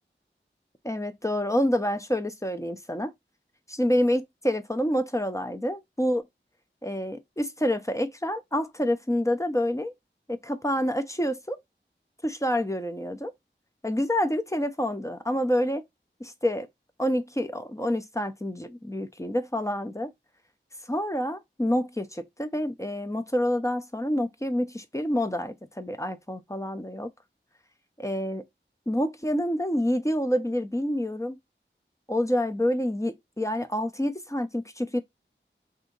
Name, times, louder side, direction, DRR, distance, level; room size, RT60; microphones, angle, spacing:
voice 1, 0.8-3.1 3.7-6.2 6.8-9.9 10.3-11.6 12.2-13.3 13.8-15.8 16.2-16.7 17.0-20.1 20.9-27.1 28.0-28.4 28.9-31.4 32.1-35.0, equal, 15° left, 0.4 m, -27 dB
2.7 x 2.6 x 3.7 m
wide cardioid pair, 50°, 20 cm